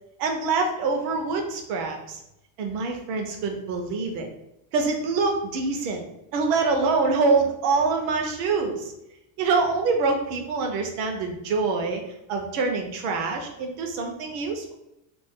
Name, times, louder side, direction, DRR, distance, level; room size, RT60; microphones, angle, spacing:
voice 1, 0.2-2.2 2.6-4.3 4.7-6.0 6.3-8.9 9.4-12.0 12.3-14.7, right 4 dB, 60° right, 3 dB, 0.7 m, -25 dB
2.5 x 2.3 x 3.5 m, 0.87 s
cardioid pair, 180°, 49 cm